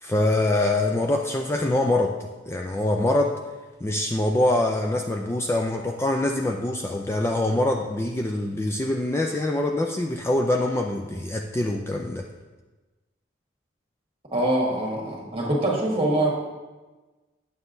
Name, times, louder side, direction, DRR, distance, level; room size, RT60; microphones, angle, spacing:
voice 1, 0.0-3.4 3.8-12.3, left 1 dB, 15° left, 2 dB, 0.3 m, -24 dB
voice 2, 14.3-16.3, right 1 dB, 30° right, -2 dB, 1.5 m, -24 dB
9.2 x 6.8 x 2.6 m, 1.2 s
head